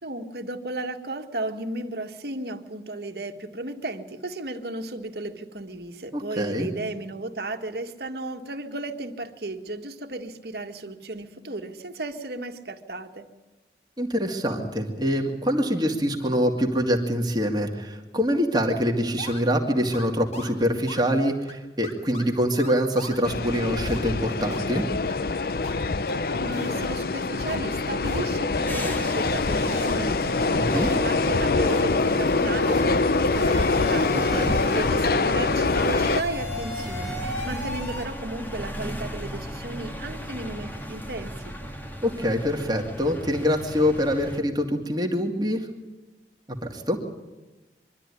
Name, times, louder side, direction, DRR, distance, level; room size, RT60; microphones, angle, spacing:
voice 1, 0.0-13.3 26.3-41.6, right 2 dB, 65° right, 6 dB, 1.8 m, -34 dB
voice 2, 6.1-6.7 14.0-24.8 30.5-30.9 34.1-34.5 42.0-45.7 46.6-47.0, equal, 25° right, 1 dB, 2.2 m, -25 dB
sound 1, 18.5-18.6 19.2-19.4 19.9-20.1 20.3-20.5 20.9-21.0 21.5-21.6 21.8-22.3 22.6-23.2 23.9-24.0 24.5-24.6 25.1-25.2 25.6-25.7 26.1-26.2 26.5-26.9 27.4-27.6 28.0-28.3 28.8-29.0 29.5-30.0 30.6-31.0 31.6-31.8 32.6-32.9 33.3-35.1 35.7-38.1, left 1 dB, 40° left, 3.3 m, -36 dB
sound 2, 23.2-36.2, left 3 dB, 55° left, 0.6 m, -24 dB
sound 3, 28.7-44.4, equal, 10° left, 1.8 m, -37 dB
24.0 x 13.0 x 9.9 m, 1.1 s
head